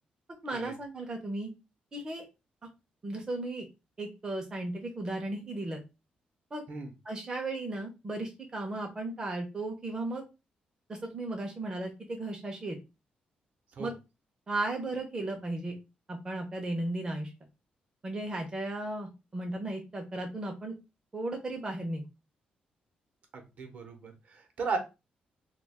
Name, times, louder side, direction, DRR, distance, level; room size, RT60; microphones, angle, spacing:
voice 1, 0.4-1.5 1.9-2.2 3.0-3.7 4.0-5.8 6.5-6.6 7.0-10.3 10.9-12.8 13.8-13.9 14.5-15.8 16.1-17.3 18.0-20.7 21.1-22.0, right 2 dB, 25° right, 2 dB, 0.5 m, -35 dB
voice 2, 23.3-24.8, right 4 dB, 55° right, 4 dB, 0.7 m, -36 dB
2.3 x 2.2 x 3.4 m, 0.27 s
cardioid pair, 120°, 3 cm